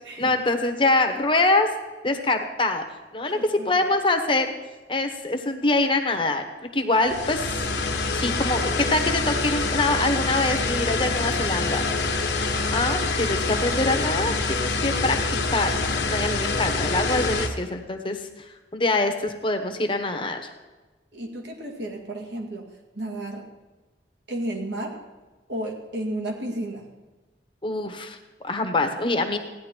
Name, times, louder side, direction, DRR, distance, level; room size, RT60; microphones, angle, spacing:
voice 1, 0.2-1.7 2.0-2.8 3.1-4.5 4.9-6.4 6.7-7.6 8.1-11.9 12.7-15.2 15.5-20.5 27.6-29.4, left 2 dB, 30° left, 5 dB, 1.1 m, -24 dB
voice 2, 3.3-3.7 21.1-23.5 24.3-25.0 25.5-26.9, right 1 dB, 75° right, 1 dB, 2.0 m, -33 dB
sound 1, 7.1-17.5, left 3 dB, 65° left, 1.4 m, -26 dB
15.5 x 10.5 x 4.5 m, 1.2 s
head